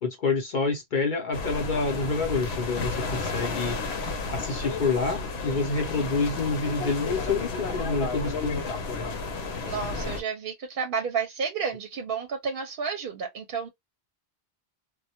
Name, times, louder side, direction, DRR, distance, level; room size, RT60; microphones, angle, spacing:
voice 1, 0.0-3.8 4.3-8.6, left 4 dB, 55° left, 0.8 m, -28 dB
sound 1, 1.3-10.2, left 3 dB, 90° left, 0.9 m, -32 dB
voice 2, 9.6-13.7, right 6 dB, 65° right, 0.7 m, -31 dB
2.1 x 2.1 x 2.8 m
omnidirectional pair, 1.1 m